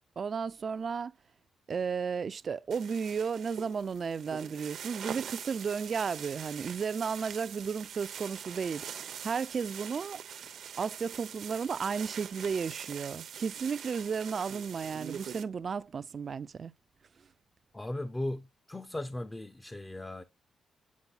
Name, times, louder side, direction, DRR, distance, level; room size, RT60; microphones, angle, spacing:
voice 1, 0.2-1.1 1.7-10.2 10.8-16.7, right 6 dB, 45° right, 0.4 m, -34 dB
sound 1, 2.7-15.4, right 8 dB, 70° right, 0.7 m, -43 dB
voice 2, 17.7-20.2, left 1 dB, 15° left, 0.5 m, -37 dB
8.4 x 4.8 x 4.0 m
cardioid pair, 105°, 0 cm